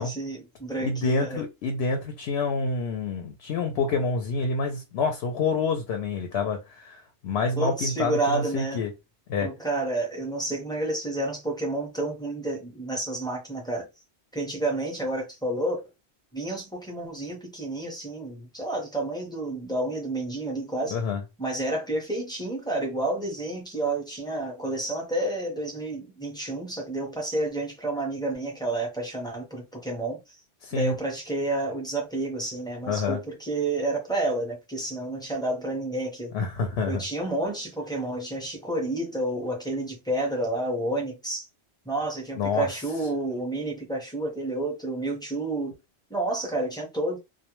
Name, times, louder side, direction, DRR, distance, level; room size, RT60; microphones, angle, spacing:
voice 1, 0.0-1.4 7.6-8.8 9.4-13.9 14.3-15.8 16.3-21.0 21.4-30.2 30.7-36.3 36.9-41.5 41.8-45.8 46.1-47.2, right 2 dB, 5° left, 0.6 m, -30 dB
voice 2, 0.8-8.9 9.3-9.5 20.9-21.2 30.6-30.9 32.8-33.2 36.3-37.0 42.4-42.7, left 4 dB, 75° left, 0.8 m, -27 dB
2.2 x 2.1 x 2.9 m
omnidirectional pair, 1.1 m